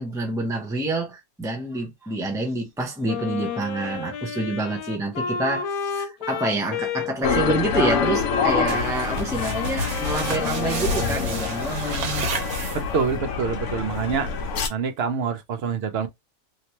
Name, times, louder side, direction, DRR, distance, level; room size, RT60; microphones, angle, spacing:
voice 1, 0.0-12.3, right 2 dB, 5° right, 0.3 m, -28 dB
Wind instrument woodwind instrument, 3.1-11.6, left 5 dB, 80° left, 1.1 m, -31 dB
sound 1, 7.2-14.7, left 6 dB, 65° left, 1.0 m, -26 dB
sound 2, 8.7-13.2, right 3 dB, 85° right, 1.4 m, -31 dB
voice 2, 12.7-14.3 14.7-16.1, right 6 dB, 55° right, 0.7 m, -26 dB
3.0 x 2.9 x 2.9 m
omnidirectional pair, 1.5 m